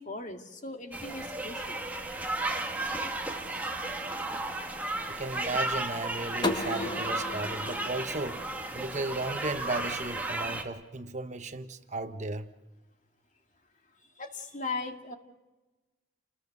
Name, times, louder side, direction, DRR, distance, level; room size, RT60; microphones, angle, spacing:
voice 1, 0.0-1.8 14.2-15.1, left 3 dB, 40° left, 2.1 m, -38 dB
sound 1, 0.9-10.6, right 2 dB, 10° right, 2.3 m, -34 dB
voice 2, 5.1-12.5, right 2 dB, 40° right, 1.1 m, -35 dB
sound 2, 6.4-9.2, left 2 dB, 25° left, 1.4 m, -35 dB
29.0 x 20.5 x 6.8 m
head